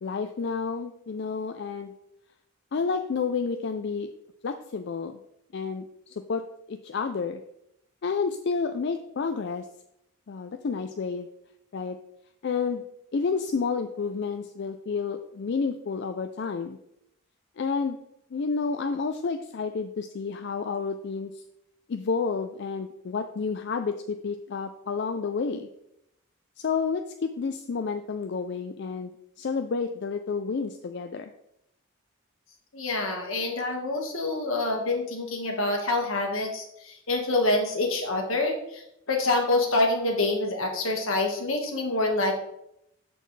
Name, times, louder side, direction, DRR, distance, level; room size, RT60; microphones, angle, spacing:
voice 1, 0.0-1.9 2.7-4.1 4.4-5.2 5.5-6.4 6.7-7.4 8.0-9.7 10.3-11.3 11.7-12.0 12.4-12.8 13.1-16.8 17.6-18.0 18.3-21.4 21.9-25.7 26.6-31.3, left 5 dB, 55° left, 7 dB, 0.4 m, -30 dB
voice 2, 32.7-42.4, left 2 dB, 80° left, 2 dB, 1.6 m, -26 dB
13.0 x 4.4 x 3.2 m, 0.79 s
head